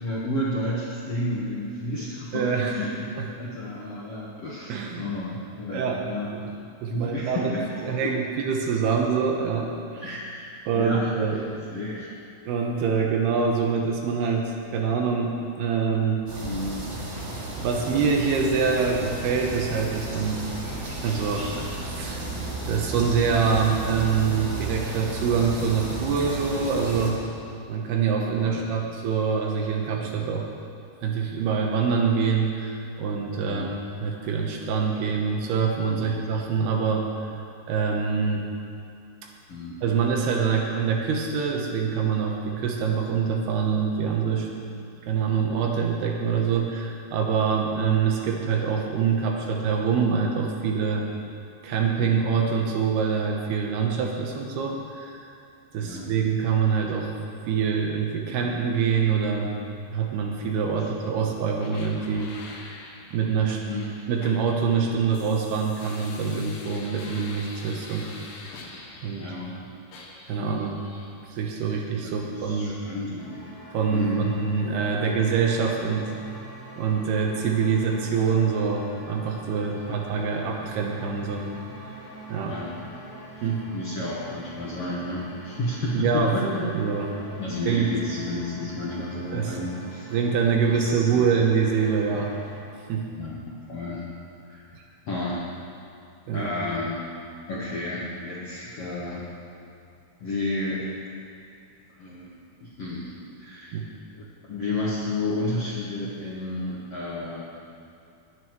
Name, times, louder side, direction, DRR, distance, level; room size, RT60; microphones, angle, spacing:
voice 1, 0.0-2.9 3.3-6.3 6.9-8.1 10.0-11.4 11.7-12.1 16.4-16.8 23.3-23.4 25.3-25.5 28.4-28.6 30.0-30.3 33.5-33.7 35.9-36.1 39.5-39.8 44.7-44.8 52.0-52.2 55.8-56.1 61.0-61.4 63.7-63.9 69.1-69.7 70.4-70.7 72.0-73.4 73.9-74.3 79.7-80.0 82.4-82.7 83.3-86.8 87.4-90.1 90.7-91.4 93.2-94.1 94.5-94.6 95.1-95.5 96.3-97.0 97.5-99.3 100.2-101.0 102.0-103.1 103.4-103.8 104.1-107.4, left 1 dB, 85° left, -6 dB, 1.3 m, -32 dB
voice 2, 2.3-2.7 3.2-3.3 4.7-5.1 5.7-6.0 6.4-6.6 6.8-7.5 7.8-10.2 10.7-11.4 12.5-16.2 17.6-20.5 21.0-21.5 21.8-22.2 22.7-27.2 27.7-30.4 31.0-33.7 34.0-37.3 37.7-38.5 39.8-44.5 45.1-51.1 51.6-55.2 55.7-57.1 57.5-59.6 59.9-62.3 62.6-62.7 63.1-63.6 64.1-68.1 69.0-69.3 70.3-70.8 71.3-72.8 73.7-76.1 76.8-81.5 82.3-82.6 83.4-83.6 86.0-87.1 87.7-87.9 89.3-89.6 90.1-92.3 92.9-93.1 96.3-96.5 103.7-103.9, right 6 dB, 75° right, 0 dB, 2.9 m, -25 dB
sound 1, 16.3-27.1, right 2 dB, 45° right, 2.8 m, -33 dB
sound 2, 61.6-69.6 69.9-71.1, left 3 dB, 65° left, 2.5 m, -45 dB
sound 3, 73.2-92.6, right 2 dB, 15° left, 2.3 m, -44 dB
21.0 x 9.8 x 3.1 m, 2.5 s
omnidirectional pair, 4.9 m